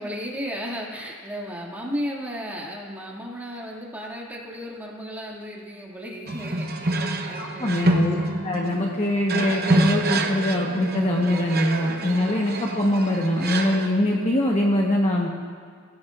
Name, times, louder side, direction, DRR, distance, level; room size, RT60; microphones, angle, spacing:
voice 1, 0.0-7.7, equal, 10° right, -3 dB, 2.3 m, -34 dB
sound 1, 6.3-13.9, right 2 dB, 45° right, 1.0 m, -26 dB
voice 2, 7.3-8.1 8.4-15.3, left 1 dB, 30° left, -2 dB, 1.2 m, -23 dB
25.5 x 15.5 x 2.5 m, 2.1 s
head